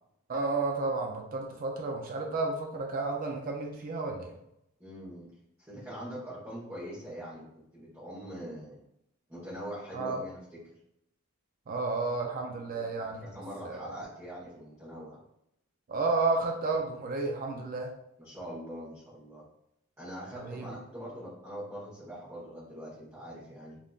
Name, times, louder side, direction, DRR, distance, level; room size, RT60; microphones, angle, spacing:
voice 1, 0.3-4.3 9.9-10.2 11.7-13.3 13.6-13.8 15.9-17.9 20.3-20.7, right 3 dB, 40° right, 1 dB, 0.4 m, -31 dB
voice 2, 4.8-5.3 5.6-8.7 9.3-10.7 12.7-15.2 18.2-19.4 20.0-23.8, equal, 15° right, -11 dB, 1.0 m, -43 dB
3.6 x 2.5 x 2.3 m, 0.79 s
head